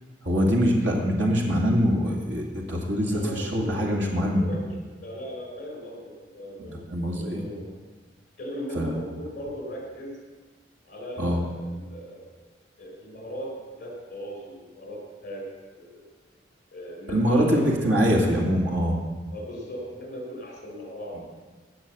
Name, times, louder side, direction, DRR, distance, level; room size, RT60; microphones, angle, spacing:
voice 1, 0.2-4.5 6.6-7.4 8.7-8.9 11.2-11.4 17.1-19.0, equal, 90° right, 0 dB, 2.3 m, -23 dB
voice 2, 2.8-4.7 5.0-6.8 7.1-7.7 8.4-10.2 10.8-12.3 12.8-15.5 15.7-16.0 16.7-17.7 19.3-21.2, equal, 45° left, 0 dB, 4.6 m, -38 dB
17.0 x 6.4 x 7.3 m, 1.3 s
head